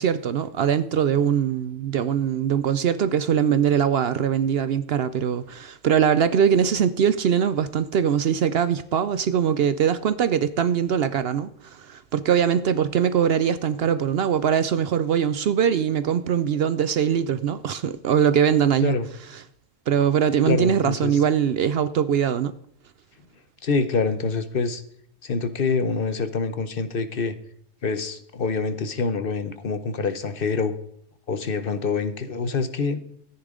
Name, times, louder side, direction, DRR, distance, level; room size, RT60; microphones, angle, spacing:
voice 1, 0.0-19.0 19.9-22.5, right 8 dB, 60° right, 0.7 m, -22 dB
voice 2, 20.5-21.1 23.6-24.8 25.2-27.3 27.8-30.7 31.3-33.0, left 4 dB, 50° left, 1.0 m, -25 dB
13.5 x 10.0 x 3.7 m
omnidirectional pair, 1.3 m